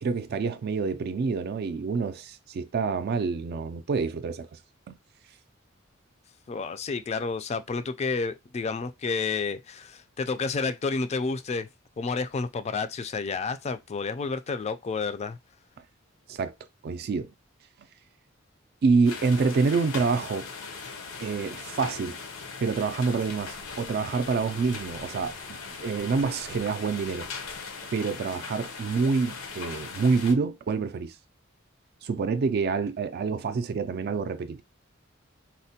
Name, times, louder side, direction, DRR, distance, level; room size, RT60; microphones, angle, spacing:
voice 1, 0.0-4.6 4.9-5.0 16.3-16.5 16.8-17.3 18.8-20.5 21.2-22.2 22.6-27.3 27.9-31.1 32.0-34.6, right 4 dB, 50° right, 0.3 m, -27 dB
voice 2, 6.5-11.7 12.0-15.4, left 4 dB, 30° left, 0.3 m, -30 dB
sound 1, 19.0-30.3, left 4 dB, 85° left, 0.7 m, -39 dB
4.1 x 2.1 x 2.7 m
head